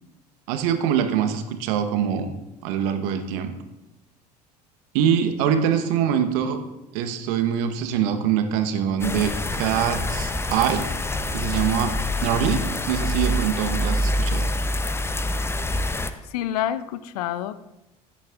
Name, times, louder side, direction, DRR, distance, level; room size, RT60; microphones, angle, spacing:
voice 1, 0.5-2.3 2.6-3.5 4.9-6.6 6.9-10.9 11.3-11.9 12.2-14.5, right 8 dB, 60° right, 8 dB, 1.1 m, -24 dB
sound 1, 9.0-16.1, left 1 dB, 10° left, 0.7 m, -26 dB
voice 2, 16.3-17.6, left 11 dB, 65° left, 15 dB, 0.6 m, -27 dB
16.0 x 9.9 x 2.5 m, 0.97 s
figure-of-eight pair, 65°, 21 cm